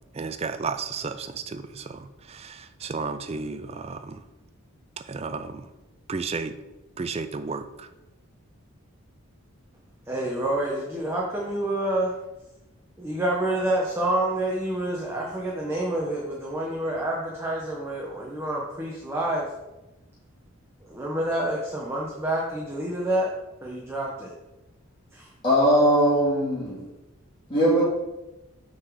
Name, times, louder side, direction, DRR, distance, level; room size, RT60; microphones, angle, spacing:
voice 1, 0.1-4.2 5.1-5.7 6.1-6.6 7.0-7.9, right 4 dB, 30° right, 10 dB, 0.3 m, -33 dB
voice 2, 10.1-12.1 13.0-19.5 20.8-23.3 23.6-24.3 25.1-25.3, right 1 dB, 10° right, -3 dB, 0.8 m, -28 dB
voice 3, 25.4-26.9 27.5-27.8, equal, 25° left, -8 dB, 2.1 m, -20 dB
6.3 x 3.9 x 6.1 m, 1.0 s
head